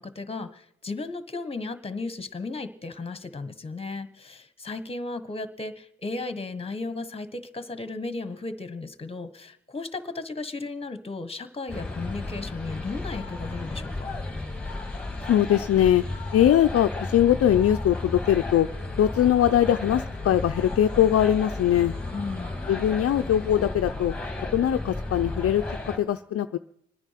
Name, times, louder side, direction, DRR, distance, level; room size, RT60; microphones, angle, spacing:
voice 1, 0.0-14.1 22.1-22.5, left 3 dB, 20° left, 12 dB, 1.4 m, -35 dB
sound 1, 11.7-26.0, left 2 dB, 5° left, 2.1 m, -34 dB
voice 2, 15.3-16.0 16.3-18.7 19.0-21.9 22.7-24.1 24.5-26.6, left 11 dB, 50° left, 7 dB, 0.6 m, -21 dB
25.0 x 9.9 x 5.8 m, 0.73 s
cardioid pair, 90°, 30 cm